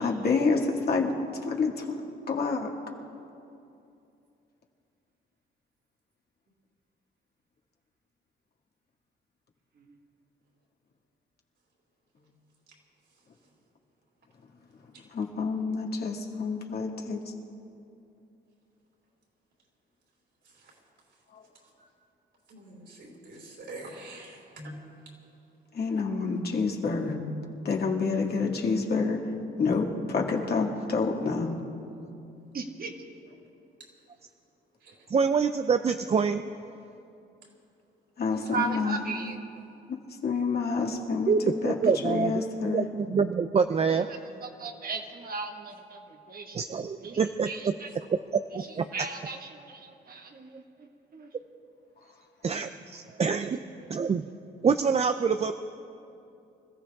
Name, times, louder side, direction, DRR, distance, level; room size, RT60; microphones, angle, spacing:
voice 1, 0.0-1.9 2.3-2.7 15.1-17.2 21.3-21.4 25.7-27.2 27.6-29.2 29.6-31.6 38.2-39.0 40.2-41.8 42.0-42.8, left 4 dB, 50° left, 0 dB, 2.1 m, -28 dB
voice 2, 22.5-24.7, right 2 dB, 65° right, -2 dB, 4.8 m, -44 dB
voice 3, 32.5-32.9 38.3-39.4 43.9-46.6 47.0-47.9 48.6-51.3 53.0-53.2 53.8-53.9, right 4 dB, 45° right, 3 dB, 1.8 m, -37 dB
voice 4, 35.1-36.5 41.3-42.4 42.7-44.1 46.5-47.7 48.3-48.9 52.4-53.6 53.9-54.2 54.6-55.5, right 5 dB, 30° right, 9 dB, 0.5 m, -26 dB
26.0 x 14.5 x 3.6 m, 2.6 s
cardioid pair, 90°, 20 cm